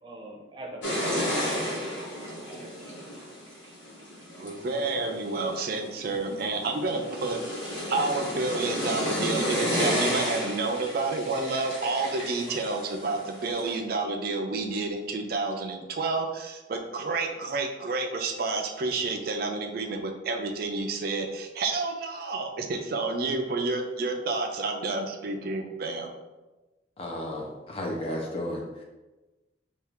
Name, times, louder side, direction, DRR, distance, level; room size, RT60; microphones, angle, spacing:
voice 1, 0.0-3.0, right 1 dB, 25° right, -2 dB, 0.7 m, -44 dB
sound 1, 0.8-13.8, equal, 70° left, 1.2 m, -32 dB
voice 2, 4.4-7.4 7.9-26.1, right 3 dB, 50° right, 4 dB, 0.4 m, -30 dB
voice 3, 27.0-28.8, left 1 dB, 30° left, -1 dB, 0.6 m, -33 dB
4.4 x 2.4 x 3.5 m, 1.1 s
head